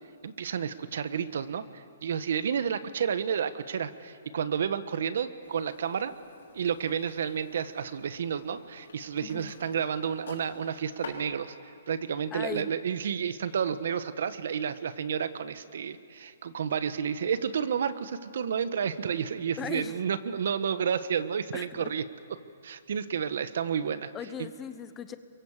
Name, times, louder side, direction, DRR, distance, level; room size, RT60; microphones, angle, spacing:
voice 1, 0.2-6.1 6.5-11.5 11.9-22.0 22.6-24.1, right 7 dB, 55° right, 12 dB, 1.3 m, -31 dB
sound 1, 5.4-11.1, left 6 dB, 65° left, 5.5 m, -50 dB
voice 2, 9.2-9.5 12.3-12.7 19.6-20.0 21.5-21.9 24.1-25.2, left 8 dB, 10° left, 11 dB, 0.9 m, -38 dB
29.0 x 23.5 x 7.4 m, 2.4 s
hypercardioid pair, 175°, 0 cm